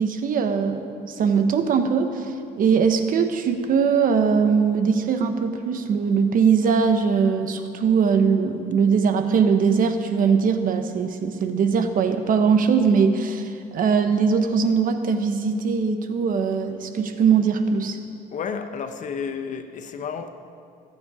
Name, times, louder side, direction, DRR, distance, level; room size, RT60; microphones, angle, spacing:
voice 1, 0.0-18.0, right 6 dB, 55° right, 1.1 m, -21 dB
voice 2, 18.3-20.3, left 6 dB, 45° left, 1.0 m, -31 dB
23.0 x 8.7 x 4.9 m
cardioid pair, 110°, 17 cm